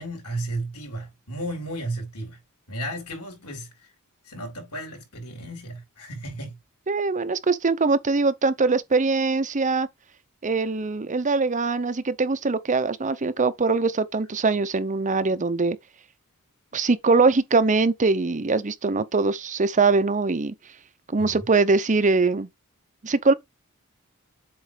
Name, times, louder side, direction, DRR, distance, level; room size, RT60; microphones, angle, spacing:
voice 1, 0.0-2.4 2.7-3.7 4.3-6.6 21.2-21.5, right 1 dB, 80° left, 4.3 m, -34 dB
voice 2, 6.9-9.9 10.4-15.8 16.7-20.5 21.1-22.5 23.0-23.3, right 3 dB, 35° right, 0.7 m, -22 dB
7.8 x 3.1 x 5.1 m
head